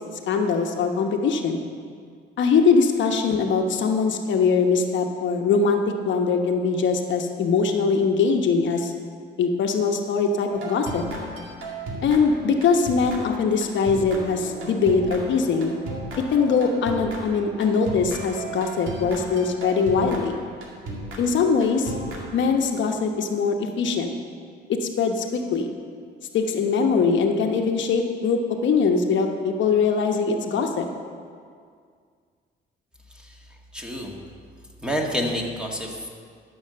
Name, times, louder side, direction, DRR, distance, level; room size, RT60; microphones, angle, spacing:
voice 1, 0.3-1.6 2.4-8.9 9.4-11.0 12.0-15.7 16.2-20.4 21.2-21.9 22.3-24.1 24.7-25.7 26.3-30.9, left 5 dB, 70° left, 3 dB, 1.1 m, -22 dB
sound 1, 10.5-22.8, right 2 dB, 85° right, 2.2 m, -35 dB
voice 2, 33.7-34.1 34.8-36.1, equal, 5° right, -1 dB, 1.8 m, -28 dB
12.5 x 6.5 x 6.8 m, 2.1 s
cardioid pair, 90°, 20 cm